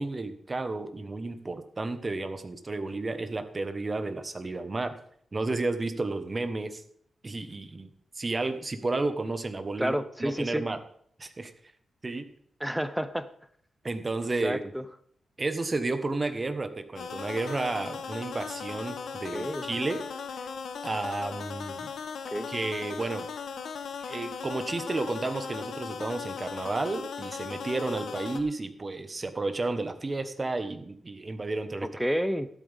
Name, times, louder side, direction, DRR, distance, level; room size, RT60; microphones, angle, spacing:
voice 1, 0.0-4.9 5.3-6.8 7.2-10.8 11.2-11.5 12.0-12.3 13.8-14.6 15.4-20.0 20.8-21.9 22.5-23.3 24.0-31.9, right 3 dB, 25° right, 9 dB, 1.1 m, -32 dB
voice 2, 9.8-10.7 12.6-13.3 14.4-14.8 19.3-19.7 22.3-22.5 31.8-32.5, equal, 5° right, 12 dB, 0.6 m, -30 dB
sound 1, 17.0-28.4, left 6 dB, 80° left, 1.2 m, -38 dB
13.5 x 12.0 x 3.5 m, 0.65 s
wide cardioid pair, 140°, 0 cm